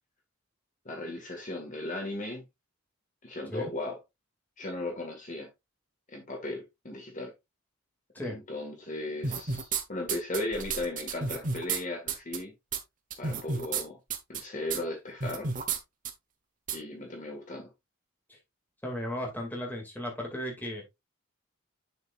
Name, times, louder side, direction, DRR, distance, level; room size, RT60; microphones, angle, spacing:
voice 1, 0.9-2.4 3.2-4.0 4.6-5.5 6.1-7.3 8.2-12.5 13.2-14.0 14.3-15.5 16.7-17.7, left 2 dB, 35° left, 1.9 m, -36 dB
sound 1, 9.2-9.8 10.1-11.8 12.1-12.4 12.7-12.8 13.1-13.8 14.1-14.4 14.7-14.8 15.2-15.8 16.1-16.2 16.7-16.8, right 5 dB, 40° right, 1.1 m, -31 dB
voice 2, 18.8-20.8, equal, 10° left, 2.3 m, -35 dB
7.2 x 6.9 x 2.5 m
head